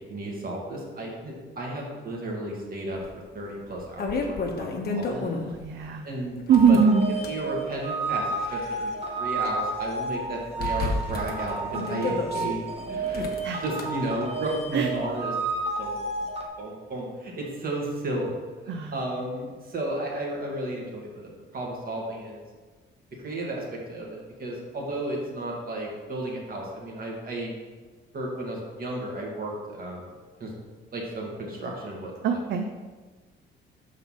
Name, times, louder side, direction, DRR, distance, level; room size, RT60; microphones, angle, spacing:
voice 1, 0.0-3.0 3.3-5.2 6.0-6.4 6.7-6.8 7.2-13.3 13.6-15.3 15.8-16.3 16.6-18.3 18.6-22.4 23.2-27.6 28.1-30.1 30.4-30.5 30.9-32.4, right 1 dB, 45° right, -2 dB, 2.0 m, -33 dB
sound 1, 3.0-3.1 3.6-5.7 6.4-7.4 8.1-9.5 9.8-9.9 10.6-12.4 13.1-13.8, left 3 dB, 50° left, 1.1 m, -32 dB
voice 2, 5.6-6.1 6.5-7.1 13.4-13.6 14.7-14.9 18.7-19.0 32.2-32.8, right 6 dB, 65° right, 5 dB, 0.5 m, -21 dB
sound 2, 6.5-16.5, right 3 dB, 30° right, 1.0 m, -31 dB
5.9 x 4.2 x 5.6 m, 1.3 s
cardioid pair, 90°, 20 cm